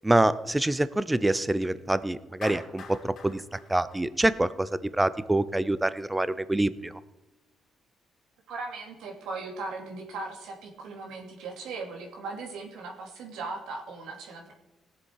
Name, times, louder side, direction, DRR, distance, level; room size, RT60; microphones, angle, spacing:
voice 1, 0.0-7.0, right 1 dB, 10° right, 16 dB, 0.6 m, -26 dB
Clapping, 2.4-4.7, left 5 dB, 70° left, 2.7 m, -45 dB
voice 2, 8.5-14.5, right 3 dB, 85° right, 1 dB, 2.7 m, -38 dB
19.0 x 7.3 x 4.7 m, 1.0 s
cardioid pair, 90°, 0 cm